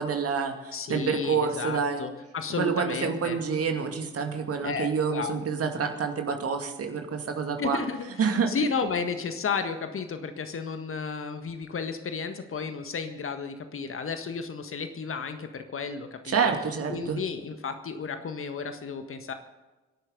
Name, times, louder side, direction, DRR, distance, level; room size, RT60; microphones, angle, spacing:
voice 1, 0.0-2.0 2.6-7.8 8.2-8.5 16.3-17.2, right 6 dB, 45° right, 5 dB, 2.4 m, -28 dB
voice 2, 0.7-3.4 4.6-5.3 7.6-16.4 16.9-19.3, left 5 dB, 40° left, 8 dB, 1.7 m, -33 dB
25.0 x 11.5 x 3.9 m, 1.2 s
figure-of-eight pair, 40°, 33 cm